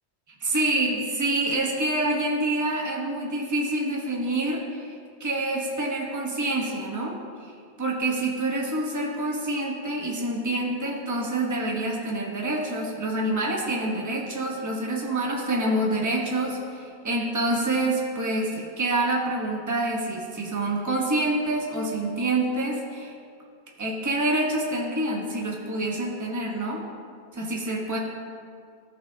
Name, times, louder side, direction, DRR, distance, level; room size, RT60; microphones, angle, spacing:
voice 1, 0.4-7.5 7.8-23.1 23.8-26.8 27.3-28.0, right 2 dB, 15° right, -2 dB, 1.0 m, -27 dB
14.0 x 6.1 x 2.7 m, 2.3 s
omnidirectional pair, 1.1 m